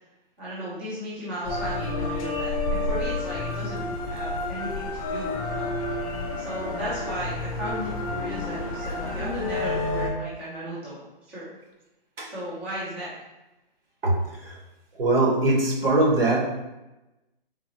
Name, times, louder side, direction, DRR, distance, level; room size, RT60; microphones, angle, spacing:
voice 1, 0.4-5.7 6.4-11.5 12.2-13.2, right 1 dB, 10° right, -10 dB, 0.6 m, -35 dB
sound 1, 1.4-10.1, left 2 dB, 35° left, 0.6 m, -30 dB
voice 2, 14.0-14.6 14.9-16.4, right 2 dB, 70° right, -2 dB, 1.5 m, -22 dB
3.8 x 2.1 x 4.1 m, 1.0 s
hypercardioid pair, 165°, 29 cm